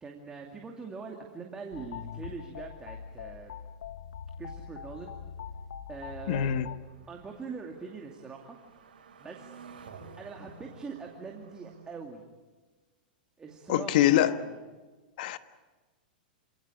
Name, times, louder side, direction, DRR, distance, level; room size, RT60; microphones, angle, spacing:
voice 1, 0.0-3.5 4.4-5.2 5.9-6.5 7.1-8.6 9.2-9.6 10.2-12.3 13.4-14.4, right 5 dB, 15° right, 2.5 m, -42 dB
sound 1, 1.7-6.8, left 7 dB, 80° left, 1.3 m, -42 dB
voice 2, 6.3-6.7 13.7-14.4 15.2-15.4, left 12 dB, 60° left, 1.4 m, -24 dB
sound 2, 6.8-11.9, right 4 dB, 90° right, 4.4 m, -52 dB
28.0 x 18.0 x 9.8 m
hypercardioid pair, 135°, 5 cm